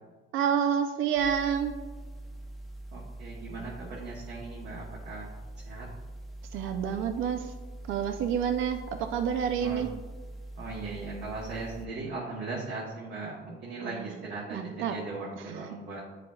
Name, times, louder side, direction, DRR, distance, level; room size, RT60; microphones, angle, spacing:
voice 1, 0.3-1.7 6.5-7.5 7.9-9.9 13.8-14.2 14.5-15.0 15.4-15.7, right 8 dB, 85° right, 6 dB, 0.5 m, -29 dB
sound 1, 1.1-11.9, right 1 dB, ahead, 0.6 m, -43 dB
voice 2, 2.9-5.3 5.7-5.9 9.6-9.8 10.6-16.0, right 3 dB, 55° right, -3 dB, 1.1 m, -38 dB
9.5 x 4.9 x 2.3 m, 1.4 s
cardioid pair, 160°, 20 cm